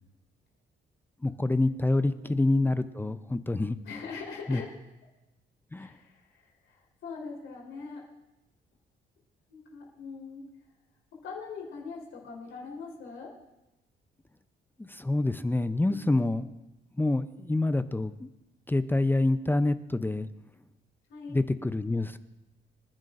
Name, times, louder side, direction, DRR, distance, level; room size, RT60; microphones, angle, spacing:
voice 1, 1.2-3.8 4.5-4.6 5.7-5.9 14.8-16.5 17.0-18.3 18.7-20.3 21.3-22.2, left 2 dB, 10° left, 12 dB, 0.5 m, -27 dB
voice 2, 3.8-4.7 5.8-8.0 9.5-10.4 11.1-13.3 15.9-16.0 21.1-21.4, left 5 dB, 80° left, -2 dB, 3.7 m, -42 dB
26.0 x 10.5 x 2.5 m, 0.98 s
cardioid pair, 90°, 20 cm